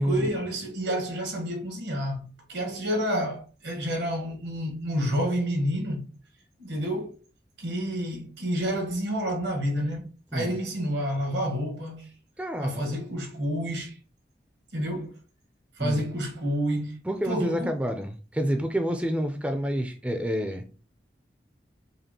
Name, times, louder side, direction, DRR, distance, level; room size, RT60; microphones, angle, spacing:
voice 1, 0.0-6.1 6.6-7.2 7.6-12.1 12.6-14.0 14.7-15.2 15.8-17.0 17.2-17.8, equal, 85° right, 1.4 m, -29 dB
voice 2, 12.4-13.0 15.8-16.0 17.1-20.7, equal, 5° right, 0.3 m, -28 dB
5.1 x 2.4 x 2.9 m
head